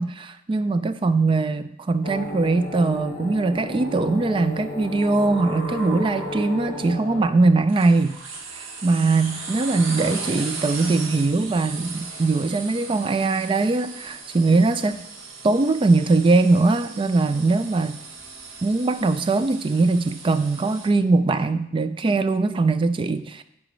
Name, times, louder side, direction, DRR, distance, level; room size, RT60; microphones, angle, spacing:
voice 1, 0.0-8.2 8.5-15.0 15.4-18.0 18.6-23.4, right 3 dB, 25° right, 11 dB, 0.3 m, -21 dB
sound 1, 2.0-7.2, left 1 dB, 40° left, 1.3 m, -33 dB
sound 2, 7.7-20.9, right 4 dB, 90° right, 1.1 m, -37 dB
8.9 x 5.0 x 3.1 m, 0.79 s
head